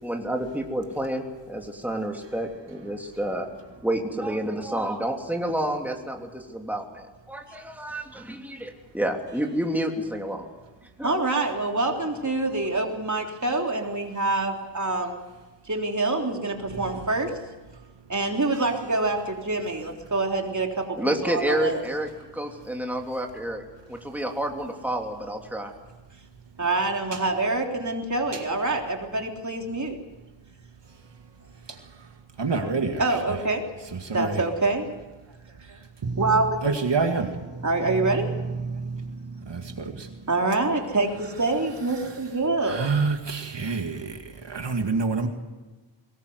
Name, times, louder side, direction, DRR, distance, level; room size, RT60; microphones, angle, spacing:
voice 1, 0.0-3.5 3.8-10.5 11.0-11.1 21.0-23.6 23.9-25.7, right 1 dB, 5° right, 3.0 m, -29 dB
voice 2, 11.0-15.2 15.7-17.4 18.1-21.8 26.6-29.9 33.0-33.6 34.1-34.9 36.2-36.7 37.6-38.3 40.3-43.1, right 2 dB, 40° right, 3.6 m, -26 dB
voice 3, 32.4-33.0 34.0-34.4 36.0-36.2 36.6-37.5 38.7-39.0 39.5-40.1 42.7-44.2 44.5-45.3, right 4 dB, 65° right, 2.2 m, -27 dB
22.5 x 19.5 x 8.0 m
wide cardioid pair, 80°, 45 cm